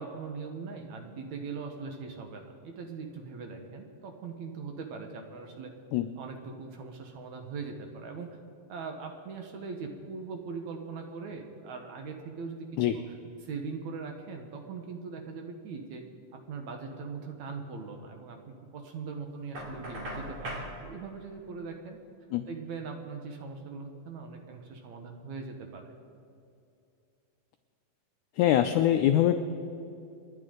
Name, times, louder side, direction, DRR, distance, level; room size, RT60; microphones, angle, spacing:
voice 1, 0.0-5.7 6.2-8.3 8.7-12.7 12.9-13.1 13.4-16.0 16.3-22.0 22.5-25.9, right 4 dB, 65° right, 4 dB, 2.2 m, -41 dB
Knock, 19.5-20.7, right 1 dB, 40° right, 3.6 m, -38 dB
voice 2, 28.4-29.4, left 11 dB, 85° left, 8 dB, 1.7 m, -23 dB
28.5 x 11.0 x 3.8 m, 2.6 s
omnidirectional pair, 4.0 m